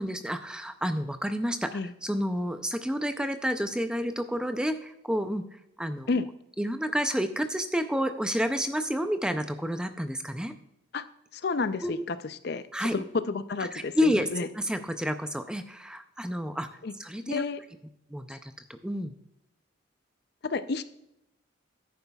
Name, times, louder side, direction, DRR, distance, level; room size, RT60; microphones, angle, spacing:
voice 1, 0.0-1.7 2.0-6.1 6.6-10.5 11.8-12.0 12.7-13.0 13.6-17.4 18.1-19.1, equal, 5° right, 8 dB, 0.4 m, -30 dB
voice 2, 11.3-12.7 12.9-14.5 16.8-16.9 17.3-17.6 20.4-20.8, left 4 dB, 50° left, 13 dB, 0.5 m, -30 dB
11.0 x 9.4 x 2.3 m, 0.83 s
head